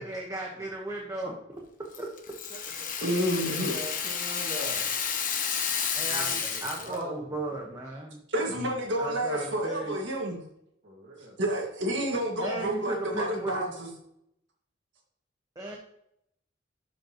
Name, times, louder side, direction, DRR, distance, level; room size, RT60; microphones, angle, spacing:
voice 1, 0.0-1.3 2.0-2.1 5.9-8.2 9.0-10.0 12.4-13.7 15.5-15.8, right 2 dB, 15° right, -1 dB, 1.0 m, -36 dB
Rattle (instrument), 1.9-7.0, left 7 dB, 45° left, 1.0 m, -31 dB
voice 2, 2.5-2.9 3.4-5.1 6.1-7.3 10.8-11.4, equal, 45° right, -7 dB, 2.2 m, -41 dB
voice 3, 3.0-3.8 8.3-10.4 11.4-13.9, right 1 dB, 70° right, 0 dB, 1.8 m, -29 dB
12.5 x 5.3 x 2.9 m, 0.77 s
head